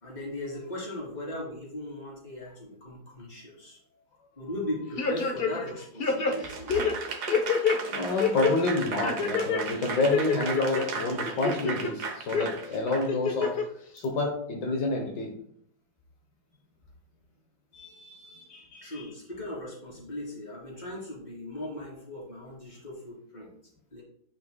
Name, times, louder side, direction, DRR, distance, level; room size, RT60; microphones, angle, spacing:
voice 1, 0.0-3.8 4.4-6.8 18.8-23.5 23.9-24.0, left 1 dB, 25° left, -5 dB, 3.2 m, -38 dB
sound 1, 5.0-5.7 6.0-7.8 8.2-8.5 9.0-9.6 10.0-10.8 11.3-11.9 12.3-12.5 13.1-13.6 14.0-14.1, left 5 dB, 45° left, 0.8 m, -27 dB
Applause / Crowd, 6.3-13.5, right 5 dB, 65° right, 1.4 m, -36 dB
voice 2, 7.9-13.5 13.9-15.4 17.7-19.0, left 2 dB, 75° left, 2 dB, 1.6 m, -29 dB
10.5 x 5.8 x 2.2 m, 0.68 s
omnidirectional pair, 1.9 m